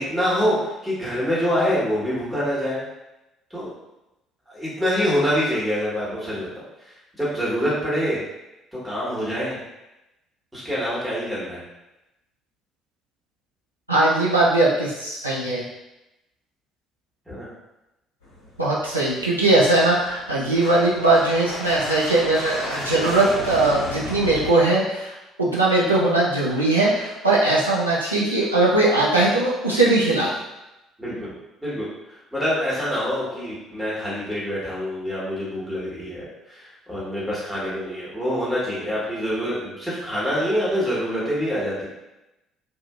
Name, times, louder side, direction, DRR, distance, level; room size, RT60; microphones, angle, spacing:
voice 1, 0.0-2.8 3.5-3.7 4.5-6.5 7.2-8.2 8.8-9.6 10.5-11.6 17.3-17.5 31.0-31.3 31.6-41.9, equal, 5° right, -9 dB, 1.3 m, -25 dB
voice 2, 13.9-15.7 18.6-30.3, right 2 dB, 85° right, -7 dB, 0.4 m, -20 dB
sound 1, 18.2-24.5, left 1 dB, 65° left, 0.8 m, -34 dB
2.6 x 2.4 x 2.4 m, 0.96 s
figure-of-eight pair, 50°, 0 cm